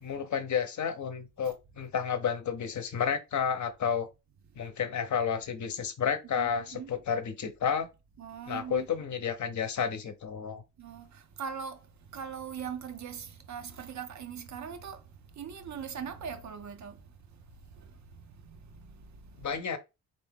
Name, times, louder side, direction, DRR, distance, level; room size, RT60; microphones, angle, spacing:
voice 1, 0.0-4.1 4.6-7.9 8.5-10.6 19.4-19.8, left 7 dB, 55° left, 0.9 m, -31 dB
voice 2, 6.4-6.9 8.2-8.9 10.8-11.8 12.1-15.0 15.4-17.0 17.8-17.9 18.4-18.6 18.9-19.1, right 7 dB, 50° right, 0.8 m, -40 dB
3.5 x 2.7 x 3.5 m
supercardioid pair, 55°, 36 cm